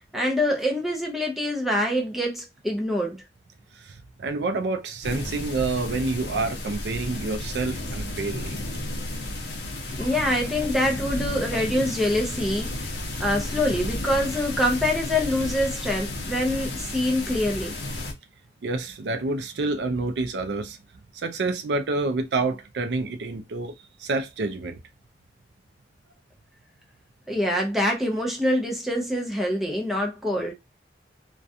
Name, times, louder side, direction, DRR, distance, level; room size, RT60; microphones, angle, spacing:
voice 1, 0.1-3.2 10.0-12.8 13.2-17.8 27.3-30.5, left 1 dB, ahead, 0.5 m, -25 dB
voice 2, 3.8-8.6 10.0-10.1 18.6-20.8 21.1-23.7 24.0-24.8, right 3 dB, 70° right, 0.4 m, -28 dB
sound 1, 5.0-18.1, left 1 dB, 70° left, 0.7 m, -32 dB
2.4 x 2.2 x 2.6 m
head